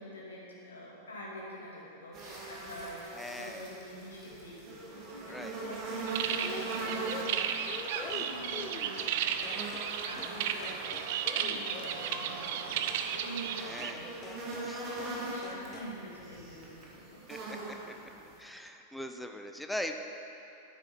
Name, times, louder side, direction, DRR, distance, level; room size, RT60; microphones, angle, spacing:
voice 1, 0.0-11.0 11.3-14.3 14.8-17.2, equal, 70° left, -4 dB, 2.6 m, -46 dB
sound 1, 2.1-18.4, right 2 dB, 35° right, 2.4 m, -42 dB
voice 2, 3.1-3.6 5.3-5.5 13.6-14.1 14.6-14.9 17.3-17.7 18.4-19.9, left 1 dB, 5° left, 5 dB, 0.6 m, -40 dB
sound 2, 6.1-13.9, right 8 dB, 50° right, 0.6 m, -34 dB
sound 3, 6.4-9.2 9.4-9.9 10.2-10.4 10.6-12.7 13.8-14.0 14.2-14.7 15.0-15.2 15.4-15.9, left 4 dB, 30° left, 1.0 m, -45 dB
11.5 x 9.1 x 5.4 m, 2.8 s
figure-of-eight pair, 90°, 0 cm